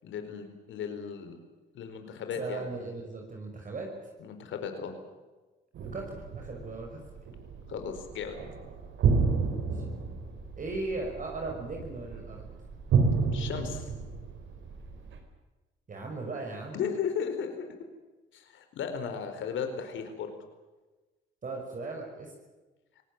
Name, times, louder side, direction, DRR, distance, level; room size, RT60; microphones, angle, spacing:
voice 1, 0.0-1.4 1.7-2.7 4.2-4.9 7.7-8.4 13.3-13.9 16.7-17.7 18.3-20.3, left 7 dB, 75° left, 7 dB, 4.5 m, -35 dB
voice 2, 2.4-3.9 5.9-7.0 9.7-9.8 10.6-12.4 15.9-16.8 21.4-22.3, right 3 dB, 40° right, 1 dB, 6.0 m, -37 dB
sound 1, 5.8-15.2, right 5 dB, 75° right, 4.8 m, -31 dB
23.5 x 19.0 x 8.9 m, 1.2 s
cardioid pair, 90°, 20 cm